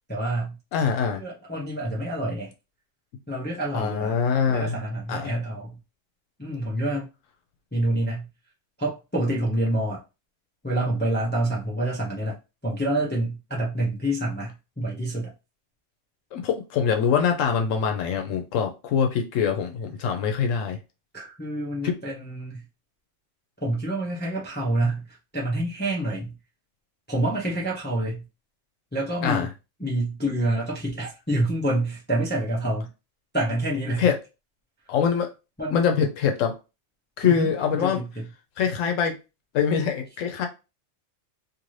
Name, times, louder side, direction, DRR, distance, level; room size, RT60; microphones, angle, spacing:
voice 1, 0.1-0.6 1.1-2.5 3.3-5.8 6.4-7.1 7.7-8.3 8.8-10.0 10.6-12.4 12.6-15.3 21.1-22.6 23.6-26.3 27.1-28.3 28.9-29.5 29.8-32.9 33.3-34.1 35.6-35.8 37.2-38.3, right 1 dB, 10° left, 0.5 m, -27 dB
voice 2, 0.7-1.2 3.7-4.7 5.1-5.3 16.3-20.8 21.8-21.9 29.2-29.5 34.0-34.2 34.9-35.3 35.7-36.5 37.2-38.0 38.6-39.2 39.5-40.5, left 7 dB, 85° left, 1.0 m, -24 dB
2.6 x 2.6 x 3.1 m
omnidirectional pair, 1.3 m